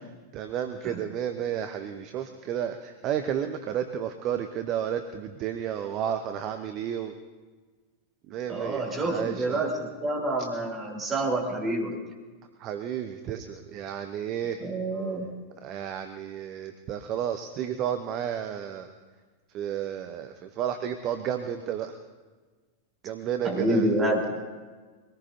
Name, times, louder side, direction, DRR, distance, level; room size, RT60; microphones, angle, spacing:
voice 1, 0.3-7.1 8.3-9.7 10.4-10.5 12.6-14.6 15.6-18.9 19.5-22.0 23.0-23.9, right 9 dB, 35° right, 8 dB, 0.9 m, -32 dB
voice 2, 8.5-9.7 10.0-11.9 14.6-15.2 23.4-24.3, right 1 dB, 20° right, -1 dB, 4.0 m, -27 dB
23.5 x 19.0 x 2.8 m, 1.4 s
figure-of-eight pair, 90°, 0 cm